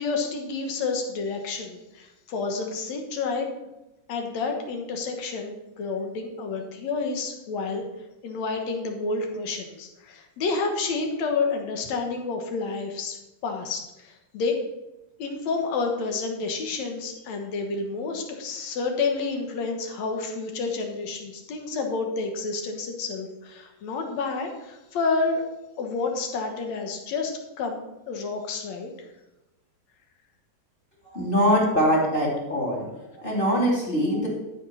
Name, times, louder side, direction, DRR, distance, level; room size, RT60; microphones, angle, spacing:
voice 1, 0.0-3.5 4.1-7.9 8.2-14.6 15.2-25.4 25.8-27.3 27.6-28.9, left 4 dB, 60° left, 4 dB, 2.3 m, -29 dB
voice 2, 31.0-32.9 33.2-34.3, equal, 15° left, -2 dB, 2.5 m, -23 dB
12.5 x 6.1 x 5.6 m, 0.98 s
omnidirectional pair, 3.8 m